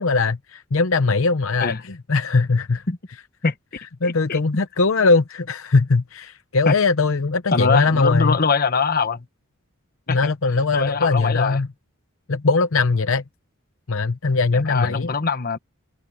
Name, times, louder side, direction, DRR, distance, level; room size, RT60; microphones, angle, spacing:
voice 1, 0.0-2.8 4.0-8.4 10.1-11.7 12.3-13.2 13.9-15.1, left 3 dB, 65° left, 0.8 m, -20 dB
voice 2, 4.0-4.4 6.7-6.8 7.5-9.2 10.1-10.3 10.7-11.6 14.5-15.6, left 4 dB, 45° left, 1.1 m, -22 dB
head